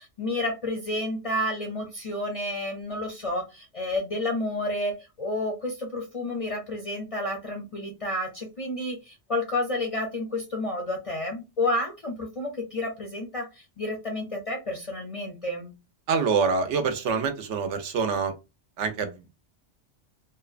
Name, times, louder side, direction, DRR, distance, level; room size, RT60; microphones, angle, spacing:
voice 1, 0.0-15.7, left 1 dB, 50° left, 0.4 m, -30 dB
voice 2, 16.1-18.3 18.8-19.3, right 5 dB, 90° right, 0.9 m, -26 dB
2.7 x 2.2 x 2.3 m
omnidirectional pair, 1.2 m